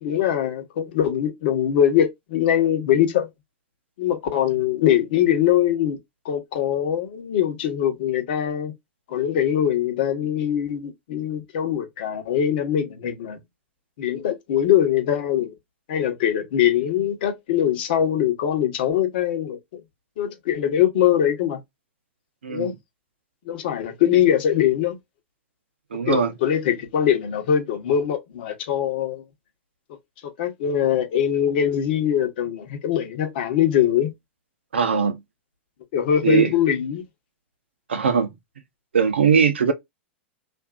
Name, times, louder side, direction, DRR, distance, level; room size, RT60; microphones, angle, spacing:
voice 1, 0.0-3.3 4.0-6.0 6.2-8.7 9.1-13.4 14.0-15.5 15.9-19.8 20.2-21.6 22.5-22.7 23.5-25.0 26.1-29.2 30.2-34.1 35.9-37.0, left 10 dB, 60° left, 1.0 m, -22 dB
voice 2, 22.4-22.7 25.9-26.3 34.7-35.2 36.2-36.5 37.9-38.3 38.9-39.7, right 6 dB, 80° right, 0.7 m, -20 dB
2.6 x 2.5 x 2.3 m
hypercardioid pair, 100°, 6 cm